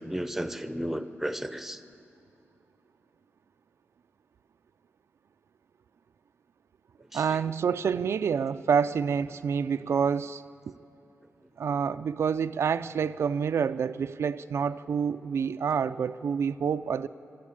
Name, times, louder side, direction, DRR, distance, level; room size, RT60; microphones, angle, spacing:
voice 1, 0.0-1.8 7.0-7.4, equal, 5° right, 11 dB, 0.7 m, -34 dB
voice 2, 7.1-10.4 11.6-17.1, right 6 dB, 70° right, 10 dB, 0.4 m, -27 dB
23.5 x 13.0 x 8.6 m, 2.8 s
wide cardioid pair, 135°, 5 cm